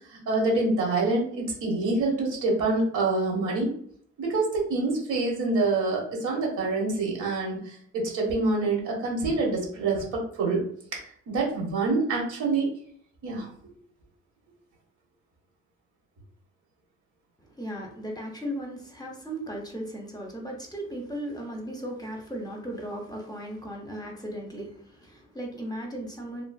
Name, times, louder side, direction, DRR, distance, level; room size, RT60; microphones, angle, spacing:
voice 1, 0.1-3.7 4.2-10.6 10.9-11.0 11.3-12.7 13.2-13.5, right 3 dB, 80° right, -2 dB, 1.2 m, -26 dB
voice 2, 17.5-26.4, right 1 dB, 15° left, 0 dB, 0.7 m, -36 dB
3.1 x 2.4 x 2.3 m, 0.64 s
cardioid pair, 90°, 30 cm